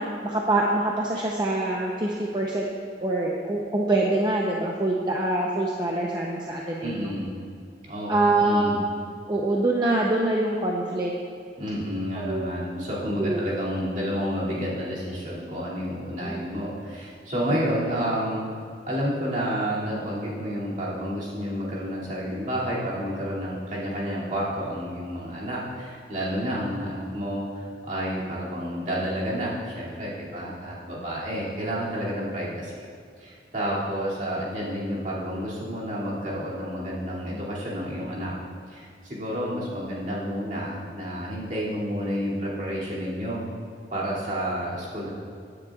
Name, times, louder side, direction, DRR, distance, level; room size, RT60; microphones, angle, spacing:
voice 1, 0.0-2.7 3.0-7.1 8.1-8.8 9.3-11.1 12.2-12.5 13.1-13.4 16.2-16.4 17.5-17.6, right 2 dB, 25° right, -2 dB, 0.7 m, -25 dB
voice 2, 6.8-7.4 7.8-8.8 11.6-18.5 18.9-32.9 33.2-38.3 38.7-43.4 43.9-45.1, equal, 45° right, -7 dB, 2.6 m, -30 dB
15.5 x 9.9 x 2.4 m, 2.3 s
head